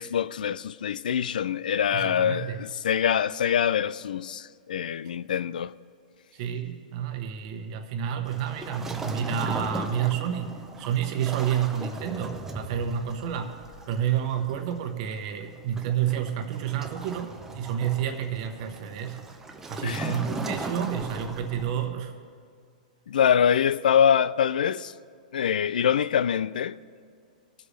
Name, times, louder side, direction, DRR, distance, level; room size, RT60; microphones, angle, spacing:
voice 1, 0.0-5.7 19.8-20.1 23.1-24.9 25.3-26.8, left 8 dB, 85° left, 0.4 m, -24 dB
voice 2, 1.9-2.6 6.3-13.6 13.9-19.2 19.7-22.1, right 9 dB, 45° right, 1.1 m, -30 dB
Waves surf, 8.2-21.9, right 2 dB, 10° right, 0.7 m, -38 dB
19.0 x 7.9 x 3.3 m
hypercardioid pair, 140°, 5 cm